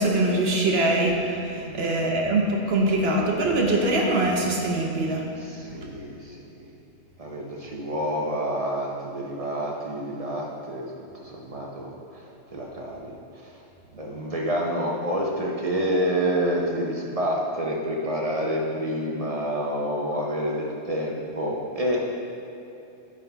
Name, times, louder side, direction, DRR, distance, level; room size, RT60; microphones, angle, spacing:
voice 1, 0.0-5.3, right 2 dB, 55° right, 0 dB, 1.0 m, -23 dB
voice 2, 1.6-1.9 5.4-6.7 7.2-13.1 13.4-13.6 14.0-22.0, equal, 35° right, -1 dB, 0.6 m, -28 dB
9.4 x 3.7 x 4.6 m, 2.8 s
omnidirectional pair, 1.4 m